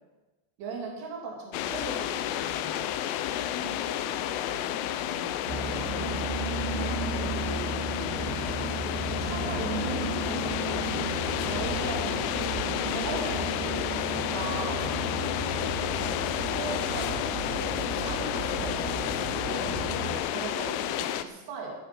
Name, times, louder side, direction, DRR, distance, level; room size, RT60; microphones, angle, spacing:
voice 1, 0.6-2.9 6.8-7.0 9.2-11.0 11.4-14.9 16.0-16.2 16.5-21.7, right 3 dB, 60° right, -1 dB, 4.5 m, -38 dB
sound 1, 1.5-21.3, left 11 dB, 85° left, 3.2 m, -31 dB
voice 2, 3.3-8.8 11.3-11.9 12.6-12.9 15.0-15.3 19.3-19.7, left 3 dB, 65° left, 2 dB, 2.9 m, -44 dB
sound 2, 5.5-20.2, right 3 dB, 85° right, 4.1 m, -34 dB
14.0 x 11.5 x 6.1 m, 1.2 s
omnidirectional pair, 5.7 m